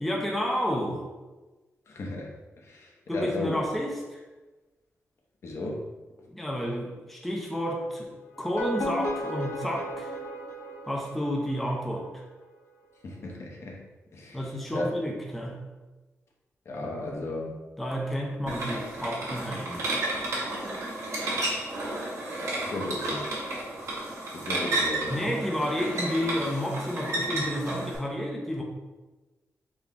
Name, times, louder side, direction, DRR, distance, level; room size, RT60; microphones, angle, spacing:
voice 1, 0.0-1.0 3.1-4.2 6.3-10.1 10.9-12.2 14.3-15.6 17.8-19.9 25.1-28.6, equal, 5° left, -1 dB, 0.4 m, -31 dB
voice 2, 1.9-2.3 2.7-3.6 5.4-5.8 13.0-13.8 14.1-14.4 14.7-14.8 16.7-17.5 22.6-23.3 24.3-25.3, left 2 dB, 60° left, -1 dB, 0.7 m, -34 dB
sound 1, 8.3-11.5, equal, 85° left, 0.9 m, -34 dB
sound 2, 18.5-27.9, right 2 dB, 75° right, 1.3 m, -32 dB
3.9 x 2.8 x 3.5 m, 1.2 s
wide cardioid pair, 155°, 5 cm